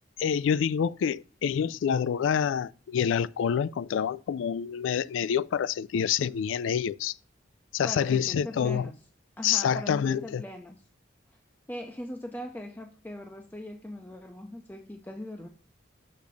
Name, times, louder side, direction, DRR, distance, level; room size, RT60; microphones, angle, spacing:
voice 1, 0.2-7.1 7.7-8.9 9.4-10.4, left 8 dB, 85° left, 0.3 m, -27 dB
voice 2, 7.8-9.0 9.4-10.8 11.7-15.5, left 1 dB, 10° left, 0.5 m, -40 dB
6.7 x 3.5 x 5.1 m
head